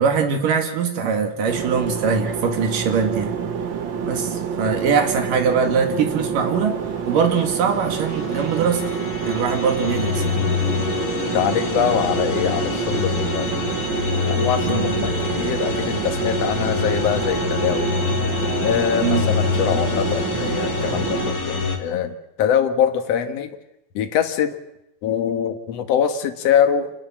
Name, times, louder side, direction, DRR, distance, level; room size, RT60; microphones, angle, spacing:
voice 1, 0.0-3.4 4.1-6.8 7.1-8.9 9.2-10.4 14.6-15.1 19.0-19.2, right 6 dB, 75° right, 5 dB, 3.9 m, -22 dB
sound 1, 1.5-21.3, right 6 dB, 55° right, 1.4 m, -27 dB
sound 2, 7.4-21.8, left 5 dB, 30° left, 2.5 m, -26 dB
voice 2, 11.3-13.6 14.3-18.0 18.6-23.6 23.9-24.6 25.0-26.9, left 8 dB, 55° left, 7 dB, 2.4 m, -23 dB
26.5 x 19.5 x 7.5 m, 0.87 s
omnidirectional pair, 3.8 m